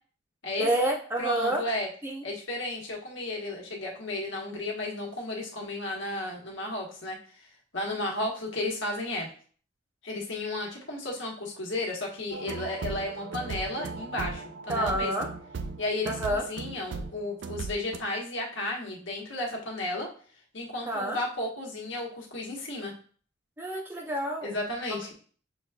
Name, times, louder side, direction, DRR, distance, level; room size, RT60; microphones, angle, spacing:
voice 1, 0.6-1.6 2.0-2.2 14.7-15.3 16.1-16.4 20.9-21.2 23.6-24.5 24.9-25.0, right 1 dB, 10° right, 0 dB, 0.8 m, -28 dB
voice 2, 1.2-1.9 2.2-7.2 7.7-9.3 10.0-15.3 15.8-20.1 20.5-22.9 24.4-25.1, left 1 dB, 75° left, -1 dB, 1.3 m, -33 dB
sound 1, 12.3-18.0, right 4 dB, 70° right, 0.4 m, -37 dB
6.4 x 3.1 x 2.3 m, 0.44 s
head